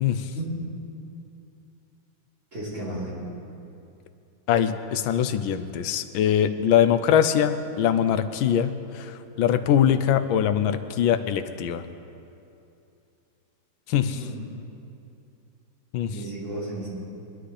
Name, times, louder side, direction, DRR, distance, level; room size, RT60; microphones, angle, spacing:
voice 1, 2.5-3.2 14.1-14.4 16.1-16.9, right 1 dB, 35° right, -9 dB, 4.2 m, -33 dB
voice 2, 4.5-11.8 13.9-14.2 15.9-16.1, left 9 dB, 80° left, 10 dB, 1.4 m, -22 dB
21.5 x 11.5 x 3.3 m, 2.7 s
omnidirectional pair, 2.2 m